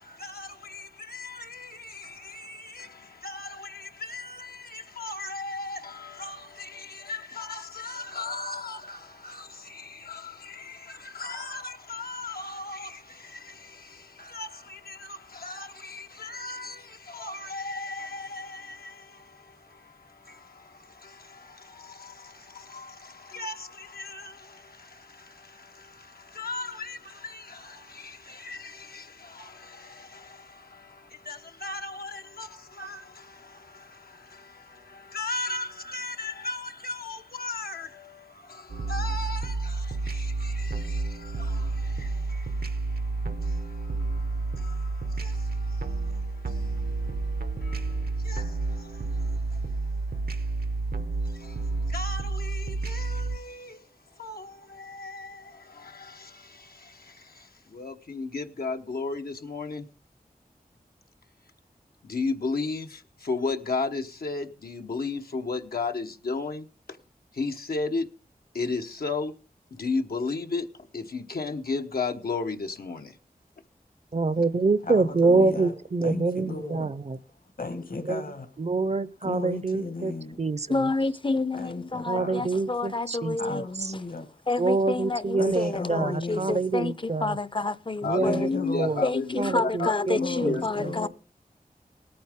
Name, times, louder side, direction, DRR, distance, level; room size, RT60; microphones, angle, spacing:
voice 1, 0.0-59.9 62.0-67.0 67.3-68.1 68.5-69.3 69.7-73.2 88.0-90.7, left 3 dB, 85° left, 1.1 m, -36 dB
sound 1, 38.7-53.4, right 3 dB, 80° right, 0.9 m, -30 dB
voice 2, 74.1-77.2 78.1-78.2 78.6-80.1 80.4-80.9 82.1-83.9 84.6-87.4 88.0-89.0 89.4-90.9, right 3 dB, 45° right, 0.6 m, -26 dB
voice 3, 74.8-75.7 76.0-77.0 77.6-78.5 79.2-80.4 81.5-82.6 83.4-84.4 85.3-86.7 88.2-89.1 90.1-91.1, left 3 dB, 70° left, 1.5 m, -35 dB
voice 4, 80.7-83.7 84.5-88.5 89.0-91.1, left 3 dB, 35° left, 0.5 m, -29 dB
19.0 x 8.7 x 3.6 m
wide cardioid pair, 65°, 15 cm